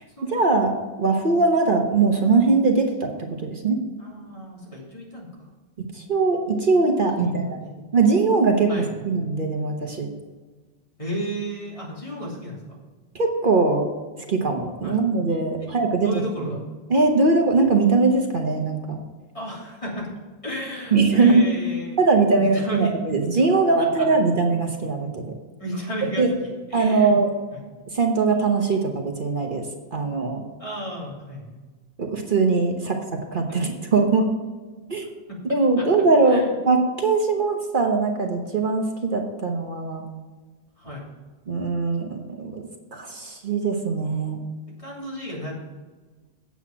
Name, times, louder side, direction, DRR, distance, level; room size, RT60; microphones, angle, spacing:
voice 1, 0.2-3.1 3.4-3.8 5.9-7.4 7.9-8.7 9.0-10.1 13.1-13.9 14.3-16.1 16.4-16.6 16.9-19.0 20.9-21.5 22.0-25.2 26.2-26.3 26.7-27.3 27.9-29.7 29.9-30.4 32.0-34.3 34.9-35.0 35.4-40.0 41.5-42.6 42.9-44.4, right 3 dB, 55° right, 2 dB, 1.3 m, -21 dB
voice 2, 4.0-5.5 7.2-7.9 8.7-9.1 11.0-12.8 14.8-15.0 15.9-16.6 19.3-20.1 20.4-22.0 22.3-23.0 23.8-24.1 25.6-27.1 27.5-27.6 30.6-31.6 32.8-32.9 33.5-33.6 35.3-35.4 35.8-35.9 36.2-36.5 40.8-41.1 44.8-45.5, equal, 30° left, -4 dB, 3.0 m, -33 dB
8.5 x 8.1 x 5.9 m, 1.3 s
omnidirectional pair, 1.1 m